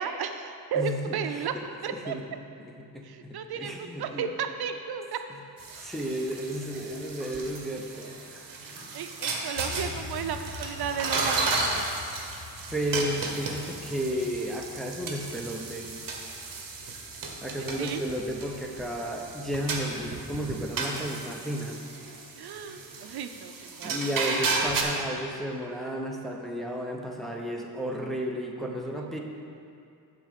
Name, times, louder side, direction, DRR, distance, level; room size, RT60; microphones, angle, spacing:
voice 1, 0.0-2.2 3.0-5.2 8.7-11.9 17.6-18.0 22.4-24.0 29.0-29.1, right 6 dB, 75° right, 7 dB, 0.6 m, -34 dB
voice 2, 0.8-1.6 1.9-2.2 2.6-4.3 5.8-8.9 12.7-15.9 17.4-21.8 23.8-29.2, equal, ahead, 0 dB, 0.7 m, -33 dB
sound 1, 5.6-24.8, right 3 dB, 60° right, 1.1 m, -34 dB
sound 2, 9.6-21.1, left 5 dB, 80° left, 1.0 m, -47 dB
9.3 x 4.0 x 6.7 m, 2.5 s
wide cardioid pair, 145°, 38 cm